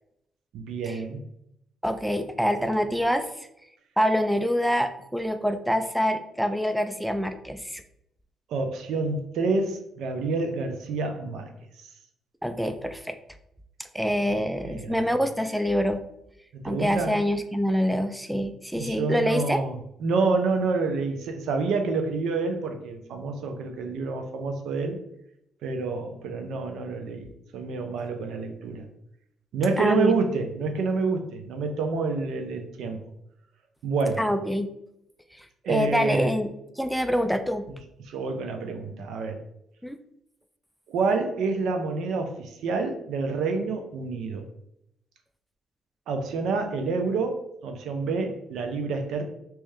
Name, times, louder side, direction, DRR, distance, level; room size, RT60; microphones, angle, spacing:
voice 1, 0.5-1.2 8.5-11.5 14.3-15.0 16.5-17.2 18.8-25.0 25.6-27.3 27.5-28.8 29.5-33.0 33.8-34.3 35.6-36.3 37.7-37.8 38.0-39.4 40.9-44.4 46.1-49.2, right 4 dB, 80° right, 5 dB, 0.6 m, -28 dB
voice 2, 1.8-3.3 4.0-7.8 12.4-13.1 13.9-16.1 16.6-19.6 29.8-30.1 34.2-34.7 35.4-37.7 39.8-40.0, equal, ahead, 8 dB, 0.3 m, -26 dB
3.2 x 3.0 x 3.5 m, 0.79 s
cardioid pair, 90°, 0 cm